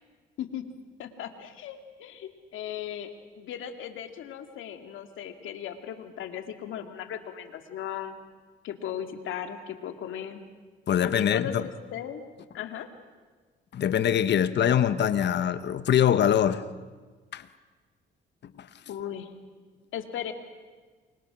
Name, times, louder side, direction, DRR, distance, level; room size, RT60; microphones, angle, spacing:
voice 1, 1.0-8.2 8.6-10.4 11.0-12.2 12.5-12.9 18.9-19.3 19.9-20.3, left 9 dB, 80° left, 2.3 m, -37 dB
voice 2, 10.9-11.7 13.7-16.6 17.3-17.5 18.4-18.7, left 9 dB, 60° left, 1.3 m, -23 dB
29.0 x 24.0 x 6.2 m
cardioid pair, 90°, 20 cm